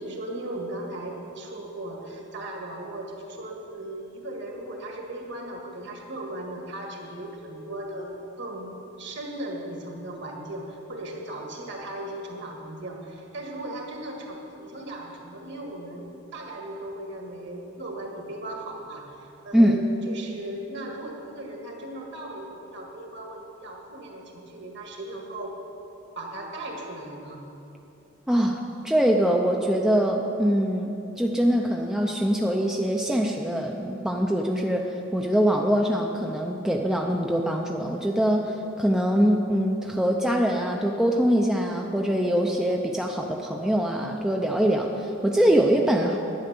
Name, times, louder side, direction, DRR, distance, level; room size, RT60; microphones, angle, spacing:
voice 1, 0.0-19.1 19.4-25.6 26.2-27.4, right 1 dB, 55° right, 1 dB, 1.8 m, -37 dB
voice 2, 28.3-28.6 28.8-30.9 31.2-46.2, equal, 5° right, 0 dB, 0.5 m, -23 dB
11.0 x 9.6 x 6.8 m, 3.0 s
head